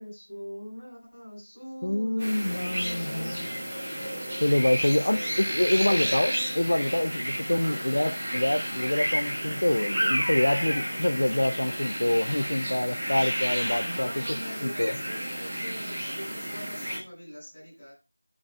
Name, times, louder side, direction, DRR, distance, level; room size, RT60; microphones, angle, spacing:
voice 1, 0.0-3.3 5.0-7.0 7.6-8.0 13.7-17.9, equal, 15° left, 6.8 m, -42 dB
voice 2, 1.8-3.5 4.4-15.0, left 1 dB, 50° left, 0.6 m, -26 dB
sound 1, 2.2-17.0, equal, 10° right, 1.7 m, -31 dB
17.5 x 6.0 x 2.5 m
figure-of-eight pair, 175°, 0 cm